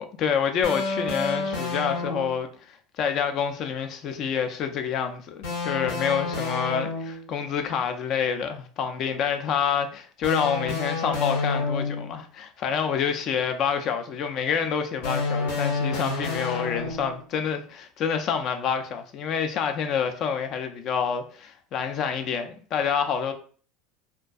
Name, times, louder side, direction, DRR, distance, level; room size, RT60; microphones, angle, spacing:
voice 1, 0.0-23.3, left 7 dB, 50° left, 0.4 m, -27 dB
sound 1, 0.6-2.4 5.4-7.3 10.2-12.2 15.0-17.2, left 3 dB, 80° left, 0.7 m, -29 dB
2.3 x 2.2 x 2.5 m
supercardioid pair, 95°, 0 cm